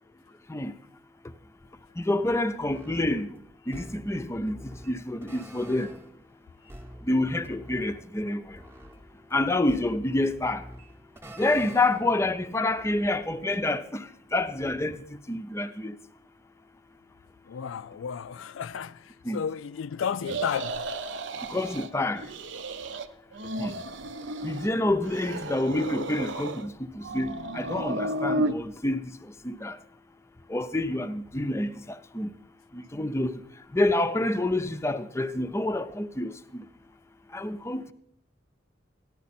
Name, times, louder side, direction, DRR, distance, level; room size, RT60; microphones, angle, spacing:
voice 1, 2.0-3.3 3.7-4.6 4.9-6.0 7.0-8.6 9.3-10.6 11.4-15.9 19.2-19.4 21.5-22.3 23.6-23.7 24.4-29.0 29.4-29.8 30.5-32.3 32.7-33.4 33.7-36.7 37.3-37.9, left 2 dB, 15° left, 0.5 m, -28 dB
sound 1, 2.6-12.2, equal, 15° right, 0.9 m, -47 dB
voice 2, 17.5-20.9, left 7 dB, 85° left, 0.4 m, -33 dB
sound 2, 20.2-21.9 22.2-23.1 23.3-24.7 25.0-26.7 27.0-28.5, right 1 dB, 70° right, 0.7 m, -33 dB
14.5 x 11.5 x 4.2 m
head